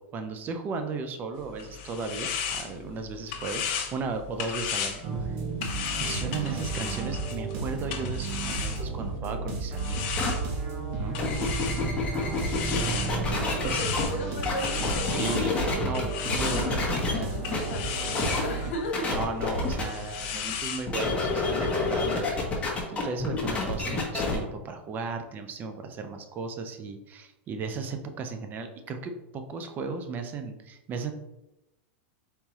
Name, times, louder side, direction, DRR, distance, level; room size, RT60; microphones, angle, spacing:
voice 1, 0.0-3.6 3.9-5.4 6.0-10.2 11.0-11.2 12.6-13.1 13.6-13.8 15.0-16.9 19.1-31.1, right 4 dB, 25° right, 7 dB, 0.6 m, -35 dB
sound 1, 1.4-9.2 9.8-20.9, left 7 dB, 50° left, 0.8 m, -36 dB
sound 2, 5.0-18.7, right 4 dB, 40° right, 1.1 m, -33 dB
voice 2, 6.2-6.6 12.8-19.1, left 1 dB, 70° left, 1 dB, 1.4 m, -37 dB
sound 3, 10.2-10.3 11.0-14.0 14.5-16.0 16.3-17.2 17.5-17.6 18.1-18.4 18.9-19.8 20.9-24.4, left 3 dB, 15° left, 1.1 m, -28 dB
4.2 x 3.8 x 3.0 m, 0.93 s
supercardioid pair, 135°, 7 cm